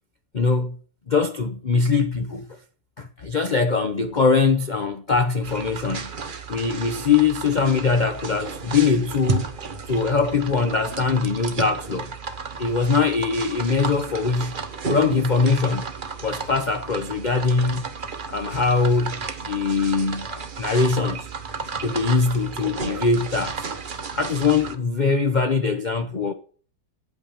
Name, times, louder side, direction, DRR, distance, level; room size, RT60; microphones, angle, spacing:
voice 1, 0.3-0.8 1.1-2.5 3.0-6.1 6.5-9.5 9.9-12.1 12.6-14.5 14.9-15.9 16.2-17.8 18.3-19.2 19.5-21.3 21.8-23.7 24.1-26.3, left 4 dB, 50° left, 0.5 m, -22 dB
sound 1, 5.4-24.7, right 4 dB, 35° right, 0.9 m, -33 dB
10.0 x 8.4 x 7.0 m
omnidirectional pair, 2.1 m